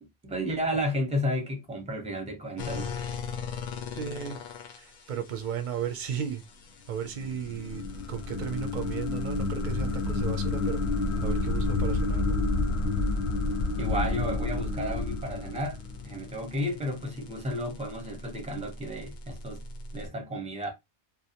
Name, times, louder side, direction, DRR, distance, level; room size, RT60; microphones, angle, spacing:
voice 1, 0.0-2.9 13.8-15.8 16.0-19.6 19.9-20.7, equal, 10° right, 0.5 m, -32 dB
sound 1, 2.6-20.1, left 5 dB, 55° left, 0.5 m, -43 dB
voice 2, 3.9-4.4 4.7-6.4 6.9-10.8 11.2-12.4, right 8 dB, 60° right, 0.6 m, -35 dB
sound 2, 7.0-16.3, left 3 dB, 90° left, 0.9 m, -29 dB
2.5 x 2.1 x 2.7 m
omnidirectional pair, 1.1 m